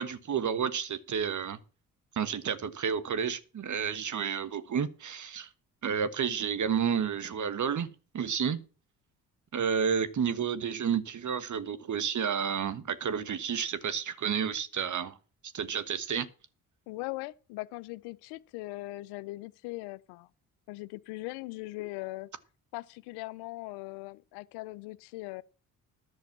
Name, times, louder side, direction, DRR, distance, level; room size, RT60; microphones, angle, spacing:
voice 1, 0.0-1.6 2.1-5.5 5.8-7.9 8.1-8.6 9.5-15.2 15.5-16.3, right 7 dB, 50° right, 1.3 m, -31 dB
voice 2, 16.9-20.3 20.7-22.3 22.7-25.4, left 21 dB, 85° left, 0.6 m, -40 dB
11.0 x 6.3 x 7.2 m
supercardioid pair, 55°, 38 cm